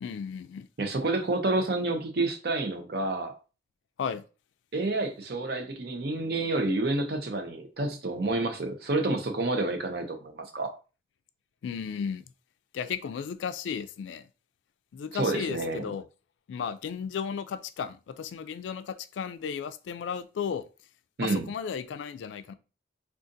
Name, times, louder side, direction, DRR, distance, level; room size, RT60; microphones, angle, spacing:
voice 1, 0.0-0.7 4.0-4.2 11.6-12.2 12.7-14.3 14.9-16.0 16.5-20.7 21.2-22.5, left 7 dB, 85° left, 0.3 m, -34 dB
voice 2, 0.8-3.3 4.7-10.7 15.1-15.8 21.2-21.5, right 2 dB, 55° right, 0.6 m, -29 dB
3.8 x 2.4 x 2.6 m
head